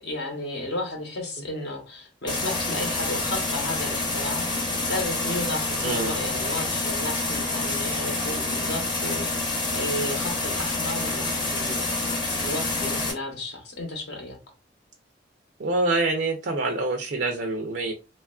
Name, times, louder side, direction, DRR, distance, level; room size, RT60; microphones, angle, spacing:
voice 1, 0.0-11.9 12.2-14.4, left 1 dB, 65° left, 0.7 m, -33 dB
sound 1, 2.3-13.1, left 2 dB, 25° left, 0.7 m, -27 dB
voice 2, 5.8-6.1 15.6-17.9, right 2 dB, 65° right, 0.4 m, -26 dB
3.0 x 2.3 x 2.2 m
head